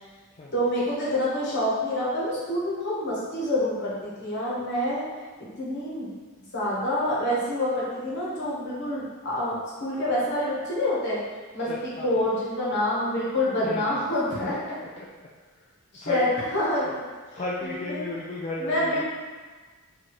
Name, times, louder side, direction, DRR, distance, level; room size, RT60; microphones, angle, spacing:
voice 1, 0.5-5.0 5.6-6.1 6.5-11.2 11.5-11.7 12.0-14.5 15.9-16.3 16.5-17.0 17.3-18.1 18.6-19.0, left 1 dB, 50° left, -7 dB, 1.2 m, -27 dB
voice 2, 11.6-12.3 13.6-14.0 14.3-14.5 14.8-15.3 16.0-16.2 17.3-19.0, left 1 dB, 30° left, -5 dB, 0.4 m, -35 dB
4.4 x 2.7 x 3.1 m, 1.4 s
head